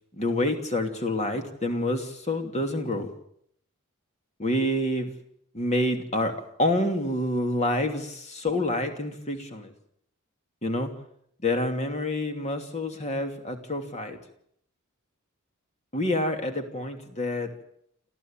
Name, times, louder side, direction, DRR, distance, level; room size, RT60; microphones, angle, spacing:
voice 1, 0.1-3.1 4.4-5.1 5.5-9.7 10.6-10.9 11.4-14.2 15.9-17.5, left 1 dB, 30° left, 5 dB, 2.8 m, -27 dB
28.0 x 14.5 x 9.0 m, 0.71 s
head